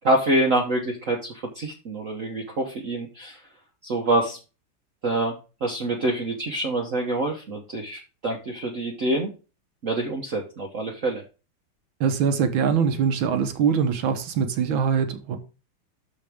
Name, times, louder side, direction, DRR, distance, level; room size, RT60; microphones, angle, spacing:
voice 1, 0.0-3.4 3.8-4.4 5.0-9.3 9.8-11.2, right 2 dB, 45° right, 1.3 m, -26 dB
voice 2, 12.0-15.4, right 7 dB, 75° right, 1.9 m, -23 dB
12.5 x 4.5 x 3.6 m
omnidirectional pair, 2.2 m